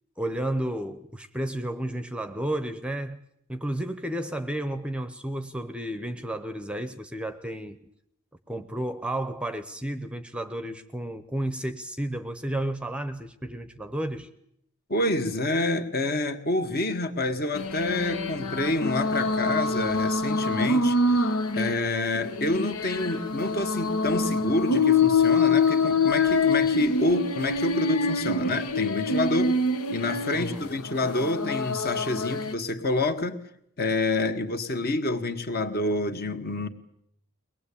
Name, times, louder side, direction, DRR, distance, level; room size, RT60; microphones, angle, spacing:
voice 1, 0.2-3.2 3.5-7.8 8.5-14.3 30.3-30.7, right 1 dB, 5° right, 0.9 m, -32 dB
voice 2, 14.9-21.3 21.5-29.5 29.9-33.4 33.8-36.7, left 2 dB, 45° left, 1.8 m, -27 dB
sound 1, 17.5-32.5, left 3 dB, 75° left, 1.4 m, -25 dB
23.0 x 20.0 x 8.6 m
head